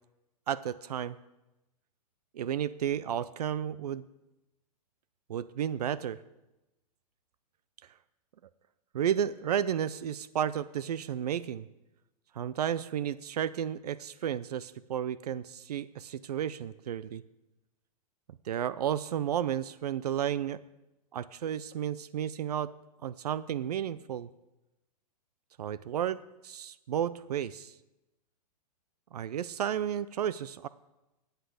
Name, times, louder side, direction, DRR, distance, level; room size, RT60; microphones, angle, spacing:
voice 1, 0.5-1.2 2.3-4.0 5.3-6.2 8.9-11.7 12.3-17.2 18.4-20.6 21.1-22.7 23.0-24.3 25.6-27.7 29.1-30.7, right 9 dB, 75° right, 17 dB, 0.5 m, -32 dB
11.5 x 8.2 x 6.5 m, 0.97 s
hypercardioid pair, 135°, 20 cm